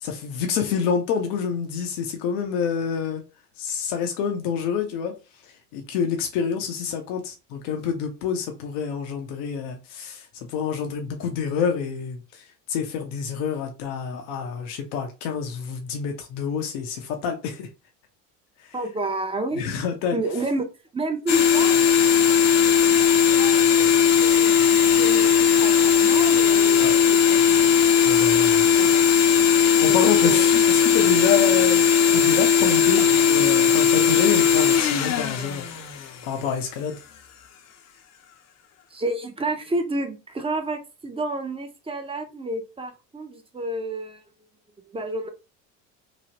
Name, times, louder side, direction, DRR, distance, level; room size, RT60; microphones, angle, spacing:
voice 1, 0.0-3.2 3.6-5.2 5.4-17.7 18.6-18.8 19.5-20.2 26.8-27.0 28.0-28.7 29.8-31.9 32.1-37.0, left 7 dB, 80° left, 0.7 m, -28 dB
voice 2, 18.7-19.6 20.1-20.6 20.9-21.8 22.1-22.3 22.9-23.9 24.1-24.6 25.0-26.8 27.1-27.7 28.8-28.9 30.0-30.5 38.9-44.2 44.9-45.3, right 2 dB, 15° right, 0.6 m, -30 dB
sound 1, 21.3-36.5, left 7 dB, 45° left, 0.6 m, -18 dB
3.0 x 2.0 x 2.8 m
supercardioid pair, 85°, 38 cm